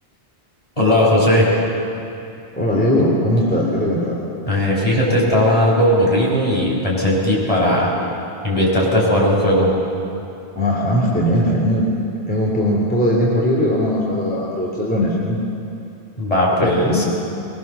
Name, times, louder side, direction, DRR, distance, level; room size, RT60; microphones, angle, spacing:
voice 1, 0.8-1.5 4.5-7.9 8.4-9.7 16.2-17.0, left 1 dB, 35° left, -4 dB, 5.7 m, -17 dB
voice 2, 2.5-4.2 10.5-11.9 12.3-15.4 16.6-17.0, equal, 10° left, -4 dB, 3.2 m, -19 dB
22.5 x 22.0 x 7.0 m, 2.7 s
omnidirectional pair, 1.0 m